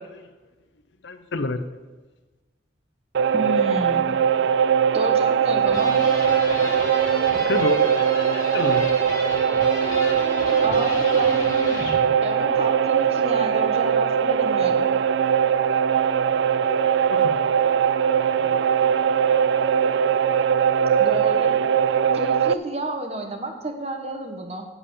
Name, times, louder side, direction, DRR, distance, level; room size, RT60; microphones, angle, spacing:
voice 1, 1.0-1.6 7.1-8.0 8.5-8.9 17.1-17.3 18.4-18.6, left 2 dB, 70° left, 10 dB, 0.7 m, -28 dB
sound 1, 3.1-22.5, right 7 dB, 70° right, 0.3 m, -20 dB
voice 2, 3.3-4.1 4.9-5.9 10.6-11.4 12.2-14.9 21.0-21.6 22.1-24.6, right 1 dB, 30° right, 5 dB, 1.2 m, -30 dB
sound 2, 5.7-12.0, left 1 dB, 20° left, 2.1 m, -34 dB
8.4 x 7.7 x 6.9 m, 1.3 s
head